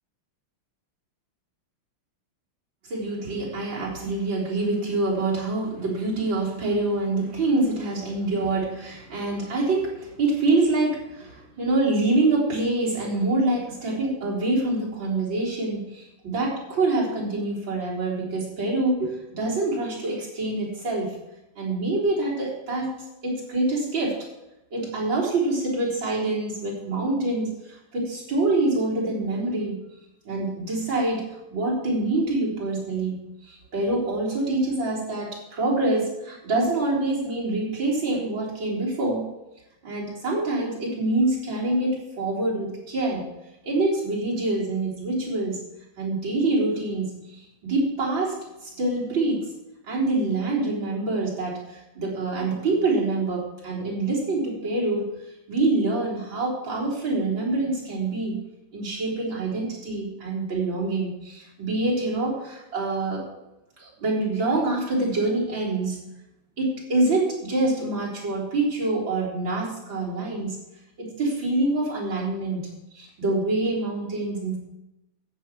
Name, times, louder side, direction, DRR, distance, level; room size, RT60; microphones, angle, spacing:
voice 1, 2.9-21.2 21.6-22.9 23.2-24.2 24.7-29.8 30.2-33.2 33.5-39.3 39.8-43.2 43.6-45.6 46.0-48.4 48.6-49.5 49.9-55.1 55.5-58.4 58.7-63.2 63.8-66.1 66.6-70.6 71.0-74.6, right 2 dB, 60° right, -5 dB, 4.8 m, -26 dB
13.5 x 8.9 x 6.2 m, 0.92 s
omnidirectional pair, 2.3 m